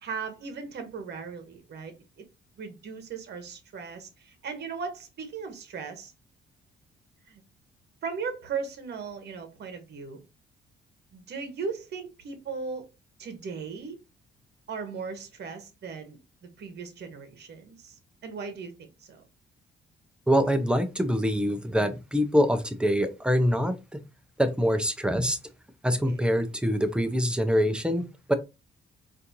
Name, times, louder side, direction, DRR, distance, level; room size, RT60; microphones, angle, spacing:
voice 1, 0.0-2.2 2.6-6.1 7.3-7.4 8.0-10.2 11.1-12.9 13.2-14.0 14.7-19.2 26.1-26.4, right 5 dB, 55° right, 1.1 m, -38 dB
voice 2, 20.3-24.0 24.4-25.4 25.8-28.3, equal, 5° right, 0.6 m, -25 dB
4.2 x 2.6 x 2.7 m
cardioid pair, 90°, 20 cm